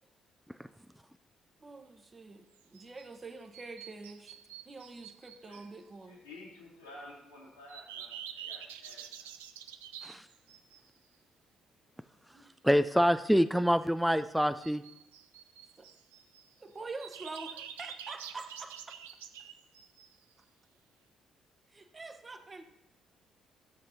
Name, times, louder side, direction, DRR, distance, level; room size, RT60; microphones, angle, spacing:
voice 1, 1.6-2.4 2.7-4.4 4.7-6.2 12.3-12.5 15.8-15.9 16.6-18.9 21.7-22.6, right 3 dB, 30° right, 6 dB, 1.0 m, -46 dB
sound 1, 2.5-3.1 3.5-5.7 7.7-10.9 14.6-16.5 17.0-20.3, right 9 dB, 75° right, 0.5 m, -47 dB
voice 2, 6.1-9.3, left 2 dB, 85° left, -6 dB, 2.5 m, -52 dB
voice 3, 12.6-14.8, equal, ahead, 12 dB, 0.3 m, -26 dB
13.5 x 7.4 x 2.9 m, 0.86 s
figure-of-eight pair, 45°, 0 cm